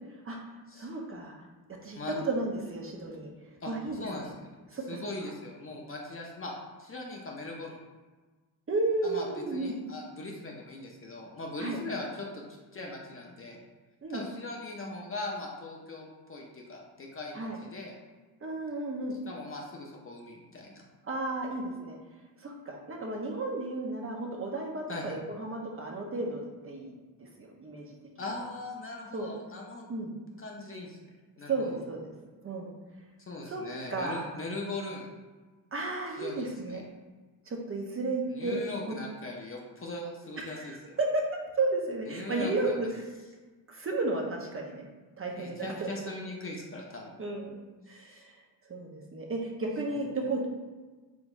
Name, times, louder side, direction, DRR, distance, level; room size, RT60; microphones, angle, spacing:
voice 1, 0.8-1.3 1.8-3.3 3.7-4.1 4.7-4.8 5.2-5.3 8.7-9.8 11.6-11.8 14.0-14.2 17.3-17.6 18.4-19.2 21.0-22.0 22.4-28.0 29.1-29.3 29.9-30.1 31.5-32.1 32.4-32.7 33.5-33.6 33.9-34.3 35.7-36.8 37.5-38.6 38.9-39.0 40.4-41.2 41.6-43.1 43.7-44.9 45.2-45.9 47.2-47.6 47.9-48.3 48.7-50.5, right 2 dB, 30° right, 0 dB, 0.7 m, -33 dB
voice 2, 3.6-4.5 4.9-6.5 6.8-7.8 9.0-12.4 12.7-13.6 14.1-17.9 19.3-20.8 24.9-25.2 28.2-29.8 30.4-31.0 31.4-31.8 33.3-35.1 36.2-36.9 38.3-41.0 42.1-42.8 45.3-47.2 47.9-48.2, left 2 dB, 30° left, 0 dB, 0.6 m, -40 dB
3.8 x 3.4 x 2.5 m, 1.3 s
supercardioid pair, 80°, 47 cm